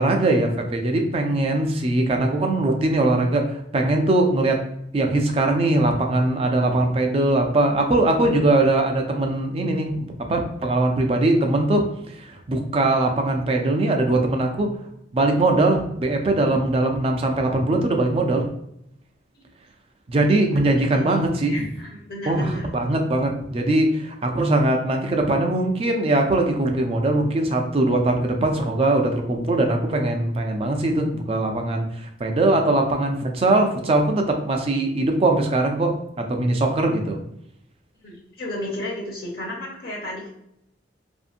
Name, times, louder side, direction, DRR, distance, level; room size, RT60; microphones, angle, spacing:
voice 1, 0.0-4.6 4.9-11.8 12.1-14.7 15.1-18.4 20.1-21.7 22.3-37.2, right 2 dB, 30° right, 3 dB, 0.3 m, -21 dB
voice 2, 20.8-22.6 38.0-40.3, left 1 dB, 55° left, -3 dB, 0.7 m, -33 dB
2.7 x 2.5 x 2.4 m, 0.77 s
head